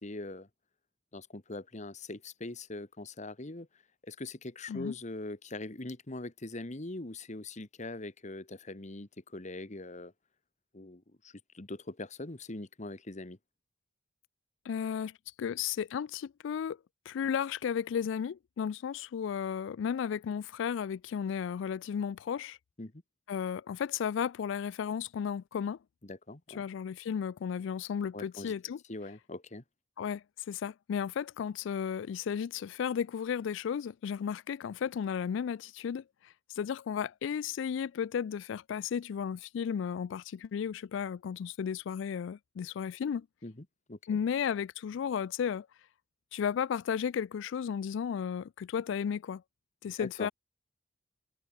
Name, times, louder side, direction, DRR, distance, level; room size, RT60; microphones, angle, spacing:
voice 1, 0.0-0.5 1.1-3.7 4.1-10.1 10.7-13.4 22.8-22.9 26.0-26.6 28.1-28.5 28.9-29.6 43.4-43.5 43.9-44.0 49.8-50.3, left 2 dB, 35° left, 1.4 m, -42 dB
voice 2, 14.7-15.1 15.4-16.8 17.1-22.6 23.3-25.8 26.5-28.8 30.0-36.0 36.6-43.3 44.1-45.7 46.3-49.4 49.8-50.3, left 7 dB, 65° left, 0.3 m, -34 dB
head